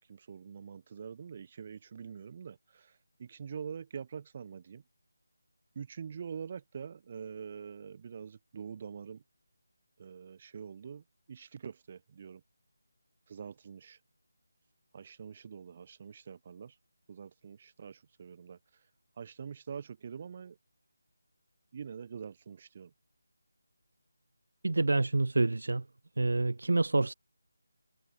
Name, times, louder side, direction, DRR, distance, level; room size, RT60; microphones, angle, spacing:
voice 1, 0.1-2.9 3.2-4.8 5.7-9.2 10.0-12.4 13.3-14.0 14.9-16.7 17.1-18.6 19.2-20.6 21.7-22.9, right 6 dB, 35° right, 3.5 m, -45 dB
voice 2, 24.6-25.8 26.2-27.1, right 2 dB, 70° right, 0.8 m, -27 dB
figure-of-eight pair, 160°, 0 cm